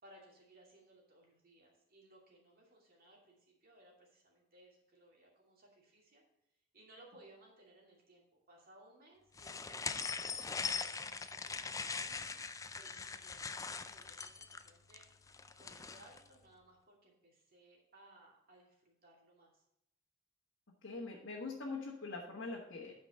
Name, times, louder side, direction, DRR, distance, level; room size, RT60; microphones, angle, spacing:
voice 1, 0.0-6.2 6.7-12.3 12.8-15.0 15.5-19.6, right 1 dB, 50° right, -2 dB, 2.7 m, -62 dB
sound 1, 9.4-16.2, left 5 dB, 15° left, 0.4 m, -41 dB
voice 2, 20.8-22.9, left 3 dB, 65° left, -3 dB, 1.5 m, -43 dB
9.1 x 5.2 x 6.4 m, 0.79 s
head